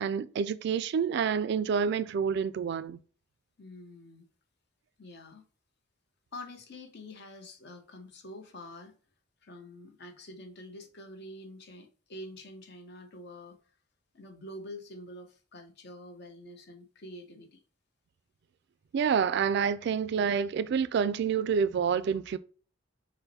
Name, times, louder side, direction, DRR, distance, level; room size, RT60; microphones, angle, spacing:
voice 1, 0.0-3.0 18.9-22.4, right 6 dB, 60° right, 0.3 m, -28 dB
voice 2, 3.6-4.3 5.0-5.5 6.3-9.0 9.4-13.6 14.1-17.6, left 1 dB, 55° left, 0.8 m, -46 dB
5.6 x 2.1 x 4.0 m
head